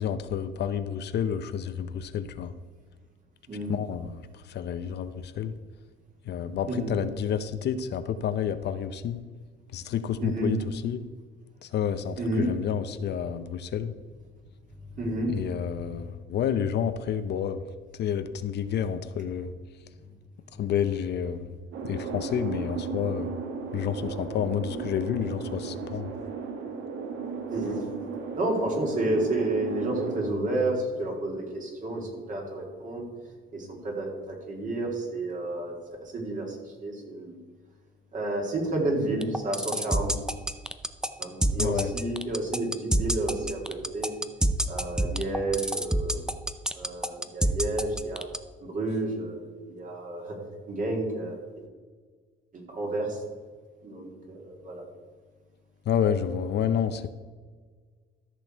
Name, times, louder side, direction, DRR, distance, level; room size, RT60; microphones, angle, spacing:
voice 1, 0.0-2.5 3.7-5.5 6.3-9.2 9.7-11.0 11.6-14.0 15.3-17.6 17.9-19.5 20.6-21.5 21.8-23.3 23.7-26.1 41.6-41.9 55.9-57.1, left 8 dB, 60° left, 11 dB, 0.7 m, -29 dB
voice 2, 10.2-10.5 12.2-12.5 15.0-15.4 15.8-15.9 27.5-27.8 28.4-33.0 33.5-35.7 36.0-37.4 38.1-40.1 41.2-44.1 44.7-46.3 46.7-48.3 48.6-49.4 49.7-50.4 50.7-51.4 52.5-53.2 53.8-54.8, right 2 dB, 40° right, 0 dB, 2.9 m, -30 dB
sound 1, 21.7-30.3, right 5 dB, 75° right, 1.2 m, -35 dB
sound 2, 39.2-48.4, right 1 dB, 5° right, 0.5 m, -26 dB
13.5 x 6.3 x 4.5 m, 1.5 s
cardioid pair, 110°, 20 cm